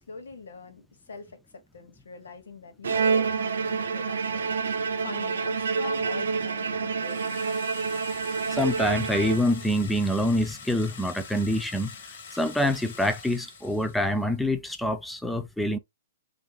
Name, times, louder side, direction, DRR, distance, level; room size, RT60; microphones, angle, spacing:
voice 1, 0.0-7.5, left 4 dB, 85° left, 1.3 m, -43 dB
Bowed string instrument, 2.8-9.8, right 5 dB, 75° right, 0.7 m, -28 dB
sound 1, 7.0-14.3, left 5 dB, 50° left, 1.3 m, -45 dB
voice 2, 8.5-11.9 12.3-15.8, left 1 dB, ahead, 0.3 m, -26 dB
3.6 x 2.5 x 2.7 m
hypercardioid pair, 165°, 0 cm